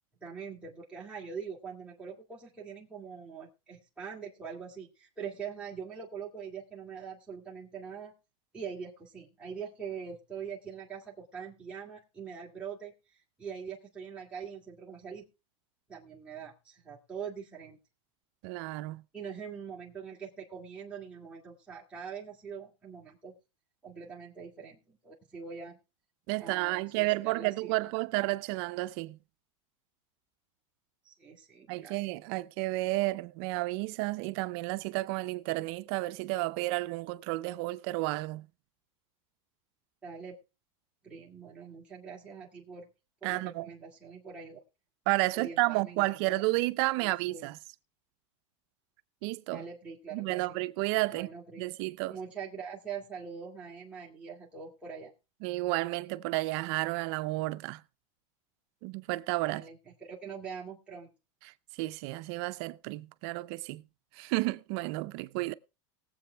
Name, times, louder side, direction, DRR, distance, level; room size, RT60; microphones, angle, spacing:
voice 1, 0.2-8.1 8.5-12.9 13.4-15.3 15.9-17.8 19.1-23.3 23.8-25.8 26.4-27.9 31.0-32.0 40.0-40.4 41.0-42.9 43.2-44.6 45.3-46.4 47.0-47.5 49.5-50.6 51.1-51.7 52.1-55.1 59.4-61.1, right 6 dB, 5° right, 2.2 m, -43 dB
voice 2, 18.4-19.0 26.3-29.2 31.7-38.5 43.2-43.7 45.1-47.6 49.2-49.6 50.1-51.3 51.6-52.2 55.4-57.8 58.8-59.6 61.7-63.8 64.1-65.5, right 21 dB, 50° right, 0.5 m, -31 dB
20.0 x 7.7 x 3.4 m
supercardioid pair, 150°, 17 cm